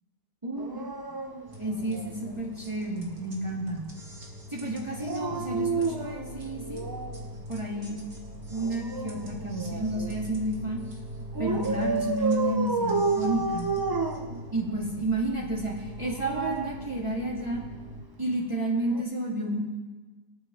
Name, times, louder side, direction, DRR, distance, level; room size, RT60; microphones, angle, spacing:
voice 1, 0.4-0.8 1.6-3.8 4.5-6.9 7.5-8.0 8.5-10.8 11.4-13.7 14.5-17.6 18.2-19.6, right 1 dB, 15° right, -4 dB, 2.0 m, -31 dB
Dog, 0.6-2.4 4.9-7.3 8.5-10.2 11.3-14.9 15.9-17.5 18.8-19.0, right 4 dB, 40° right, 0.3 m, -31 dB
sound 1, 1.5-18.0, equal, 75° right, 2.6 m, -42 dB
23.5 x 8.6 x 3.3 m, 1.3 s
omnidirectional pair, 1.8 m